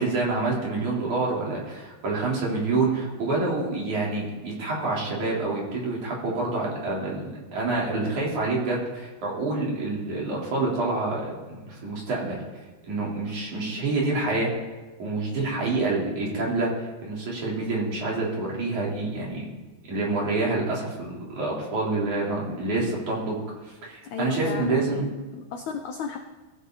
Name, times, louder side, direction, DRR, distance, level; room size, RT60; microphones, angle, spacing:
voice 1, 0.0-12.4 12.9-14.5 15.0-19.5 19.9-23.4 23.8-25.1, right 3 dB, 45° right, -4 dB, 5.0 m, -27 dB
voice 2, 24.0-26.2, left 6 dB, 80° left, 4 dB, 1.7 m, -35 dB
21.5 x 16.0 x 4.1 m, 1.2 s
omnidirectional pair, 4.7 m